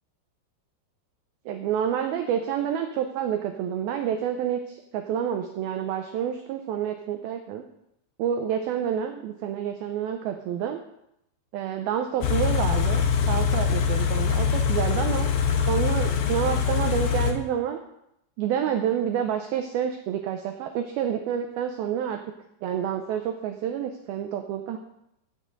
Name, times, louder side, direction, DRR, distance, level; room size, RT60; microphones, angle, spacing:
voice 1, 1.5-7.6 8.2-10.8 11.5-15.3 15.7-17.8 18.4-22.2 22.6-24.8, right 9 dB, 80° right, 5 dB, 2.2 m, -28 dB
Car / Idling, 12.2-17.3, left 7 dB, 90° left, 1.7 m, -23 dB
16.0 x 8.4 x 3.9 m, 0.80 s
omnidirectional pair, 5.2 m